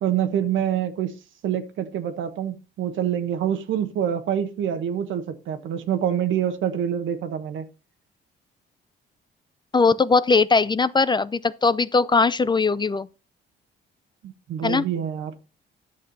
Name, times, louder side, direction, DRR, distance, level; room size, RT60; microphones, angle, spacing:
voice 1, 0.0-1.2 1.4-7.7 14.2-15.3, right 9 dB, 75° right, 1.2 m, -26 dB
voice 2, 9.7-13.1 14.6-14.8, left 4 dB, 20° left, 0.4 m, -20 dB
10.5 x 6.5 x 4.1 m
cardioid pair, 90°, 20 cm